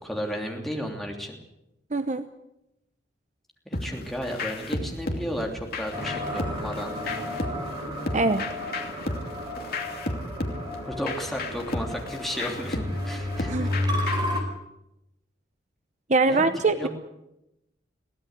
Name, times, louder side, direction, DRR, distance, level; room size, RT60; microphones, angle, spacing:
voice 1, 0.0-1.4 3.6-7.1 10.8-13.7 14.3-14.5 16.3-16.9, equal, ahead, 1 dB, 3.1 m, -34 dB
voice 2, 1.9-2.3 8.1-8.4 13.5-13.7 16.1-16.9, right 3 dB, 40° right, 10 dB, 0.8 m, -23 dB
sound 1, 3.7-14.4, left 2 dB, 55° left, 2.7 m, -34 dB
sound 2, 5.9-14.4, left 1 dB, 25° right, 4.9 m, -32 dB
23.0 x 16.5 x 8.2 m, 0.89 s
head